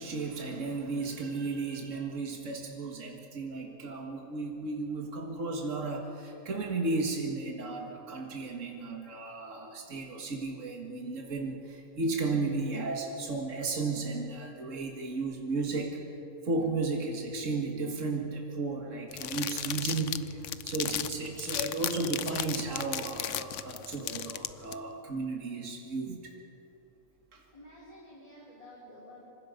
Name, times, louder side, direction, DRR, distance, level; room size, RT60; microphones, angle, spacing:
voice 1, 0.0-16.0 16.4-26.4 27.3-27.4, right 3 dB, 60° right, 1 dB, 2.3 m, -34 dB
sound 1, 19.1-24.7, left 10 dB, 65° left, 1.0 m, -35 dB
voice 2, 27.5-29.3, left 1 dB, 25° left, -6 dB, 4.2 m, -51 dB
26.5 x 25.5 x 5.3 m, 3.0 s
omnidirectional pair, 1.5 m